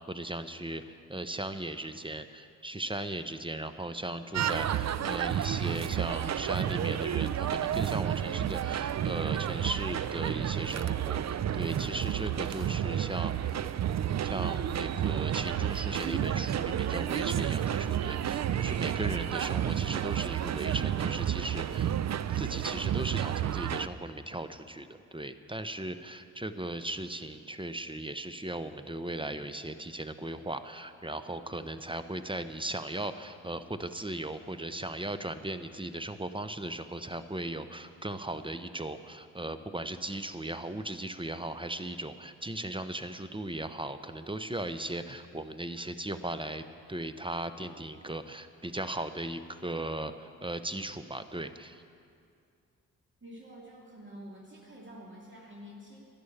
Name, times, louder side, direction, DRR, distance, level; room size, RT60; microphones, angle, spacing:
voice 1, 0.1-0.8 1.1-13.7 14.2-21.9 22.3-51.8, right 1 dB, 15° right, 10 dB, 0.8 m, -37 dB
sound 1, 4.3-23.9, right 10 dB, 45° right, 0.5 m, -31 dB
voice 2, 53.2-56.0, equal, 30° right, -3 dB, 2.5 m, -48 dB
11.0 x 10.5 x 7.3 m, 2.3 s
hypercardioid pair, 40°, 38 cm